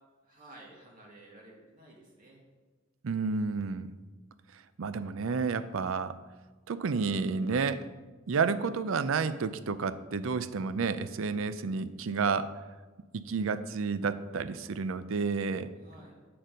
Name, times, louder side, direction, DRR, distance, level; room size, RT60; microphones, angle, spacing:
voice 1, 0.2-2.4 15.8-16.2, right 1 dB, 45° right, -3 dB, 1.7 m, -53 dB
voice 2, 3.0-3.9 4.8-6.2 6.7-7.8 8.3-12.5 13.1-15.7, right 5 dB, 70° right, 14 dB, 0.5 m, -30 dB
7.7 x 6.6 x 5.2 m, 1.3 s
head